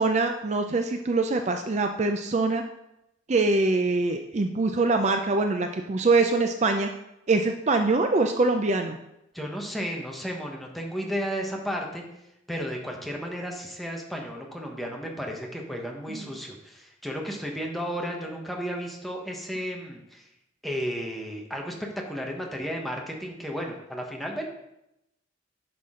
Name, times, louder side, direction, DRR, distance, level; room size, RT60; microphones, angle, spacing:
voice 1, 0.0-2.6 3.3-6.9 7.3-9.0 16.1-16.3, right 3 dB, 35° right, 5 dB, 0.5 m, -24 dB
voice 2, 9.3-12.0 12.5-20.3 20.6-21.8 22.1-24.5, equal, ahead, 0 dB, 1.1 m, -33 dB
10.5 x 6.0 x 3.7 m, 0.86 s
head